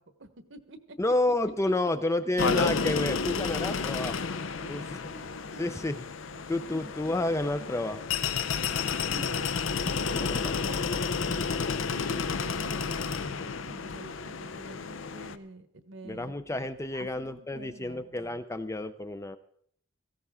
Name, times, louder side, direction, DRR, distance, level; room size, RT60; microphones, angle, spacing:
voice 1, 0.0-1.0 4.5-5.8 6.2-7.0 8.1-16.3 16.9-18.1, right 2 dB, 60° right, 10 dB, 1.2 m, -49 dB
voice 2, 1.0-4.3 4.7-4.8 5.6-5.9 6.5-8.0 10.1-10.5 11.3-11.4 16.0-19.4, left 2 dB, 15° left, 11 dB, 0.5 m, -30 dB
sound 1, 2.4-15.4, left 5 dB, 65° left, 0.6 m, -31 dB
17.0 x 15.0 x 3.6 m, 0.65 s
head